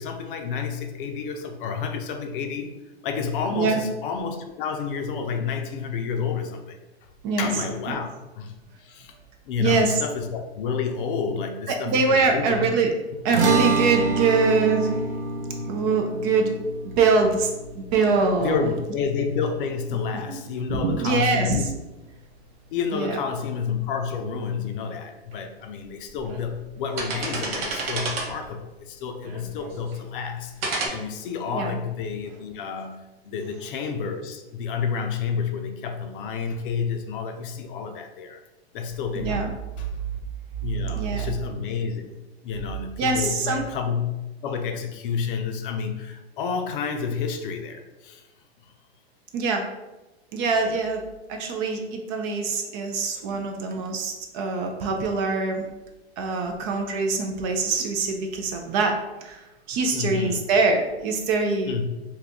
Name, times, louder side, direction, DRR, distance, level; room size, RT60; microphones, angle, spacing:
voice 1, 0.0-2.7 3.0-6.8 7.4-8.1 8.3-8.5 8.8-9.1 9.5-12.6 15.6-15.7 18.4-21.7 22.7-30.5 30.9-33.0 33.2-38.4 38.7-39.3 39.8-39.9 40.6-42.0 42.4-48.2 50.6-50.7 59.9-60.5 61.7-61.8, left 6 dB, 55° left, 5 dB, 0.5 m, -29 dB
voice 2, 9.6-9.9 11.9-12.9 13.2-15.0 15.7-16.5 17.0-17.5 17.8-18.6 20.7-21.7 22.9-23.2 31.5-31.7 39.2-39.5 41.0-41.3 43.0-43.6 49.3-49.6 50.3-51.0 51.3-55.6 56.2-58.9 59.2-59.4 59.7-61.8, right 4 dB, 35° right, 3 dB, 0.4 m, -23 dB
sound 1, 13.3-19.8, right 3 dB, 85° right, 0.6 m, -28 dB
sound 2, 25.3-25.4 26.1-26.4 26.8-28.5 29.2-29.9 30.6-30.9, right 3 dB, 65° right, 1.0 m, -30 dB
2.7 x 2.4 x 3.5 m, 1.0 s
hypercardioid pair, 120°, 32 cm